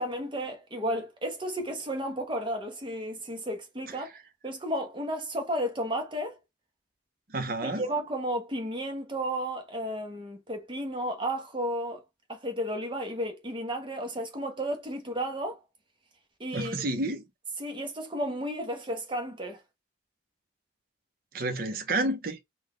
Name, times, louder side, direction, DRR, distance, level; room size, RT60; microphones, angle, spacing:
voice 1, 0.0-4.1 4.4-6.4 7.6-12.0 12.3-15.6 16.4-16.7 17.6-19.6, equal, 25° right, 1.0 m, -33 dB
voice 2, 7.3-7.8 16.5-17.2 21.3-22.4, right 2 dB, 50° right, 0.8 m, -30 dB
3.9 x 2.4 x 3.2 m
head